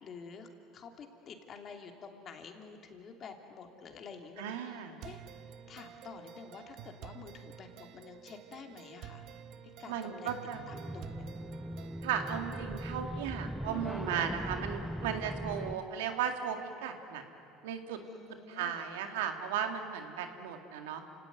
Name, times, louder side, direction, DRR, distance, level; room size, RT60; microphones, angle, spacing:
voice 1, 0.0-5.2 5.7-9.3 9.8-10.3 10.7-11.3 14.6-15.0 18.0-18.8, left 5 dB, 45° left, 4 dB, 2.9 m, -49 dB
voice 2, 4.4-5.0 9.9-10.6 12.0-17.2 17.6-18.0 18.5-21.0, right 8 dB, 90° right, 6 dB, 2.1 m, -36 dB
sound 1, 5.0-13.0, right 9 dB, 65° right, 1.1 m, -50 dB
sound 2, 10.7-15.7, equal, ahead, 0.7 m, -40 dB
28.5 x 17.5 x 9.5 m, 2.9 s
supercardioid pair, 95°, 0 cm